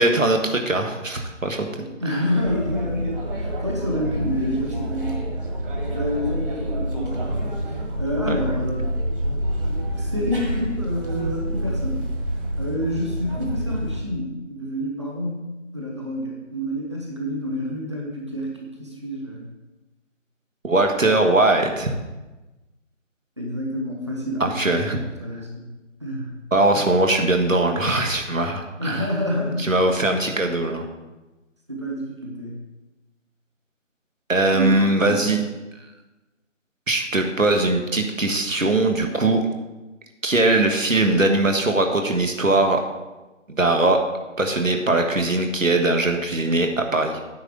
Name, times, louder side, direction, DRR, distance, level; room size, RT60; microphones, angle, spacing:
voice 1, 0.0-1.7 2.1-2.2 8.3-8.4 20.6-21.9 24.4-25.0 26.5-29.1 29.6-30.8 34.3-35.4 36.9-39.4 40.2-42.8 43.5-44.0 44.4-47.2, right 2 dB, 90° right, 3 dB, 1.6 m, -20 dB
voice 2, 2.0-3.1 3.4-5.3 5.9-7.5 8.0-8.9 10.0-12.0 12.6-15.3 15.7-19.4 23.4-25.7 26.0-26.4 28.8-29.7 31.7-32.6 34.5-35.2, equal, 25° right, -1 dB, 0.8 m, -28 dB
sound 1, 2.4-14.0, equal, 45° right, 1.6 m, -27 dB
9.6 x 3.9 x 7.3 m, 1.1 s
figure-of-eight pair, 165°, 38 cm